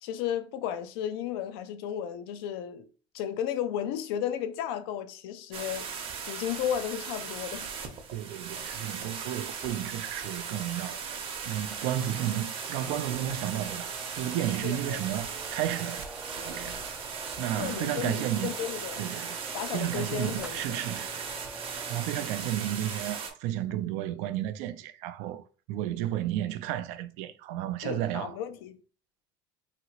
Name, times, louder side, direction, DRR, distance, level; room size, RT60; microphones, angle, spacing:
voice 1, 0.0-2.9 3.1-5.9 6.3-7.7 14.6-15.0 17.6-19.1 19.5-20.8 27.8-28.8, left 10 dB, 80° left, 0.5 m, -34 dB
sound 1, 5.5-23.3, right 6 dB, 45° right, 0.8 m, -38 dB
voice 2, 8.1-11.2 11.5-13.9 14.2-17.0 17.4-18.5 19.0-19.4 19.7-21.3 21.9-28.3, right 12 dB, 70° right, 0.4 m, -33 dB
sound 2, 11.6-22.1, right 1 dB, 5° right, 0.4 m, -46 dB
2.9 x 2.8 x 2.8 m
supercardioid pair, 105°, 12 cm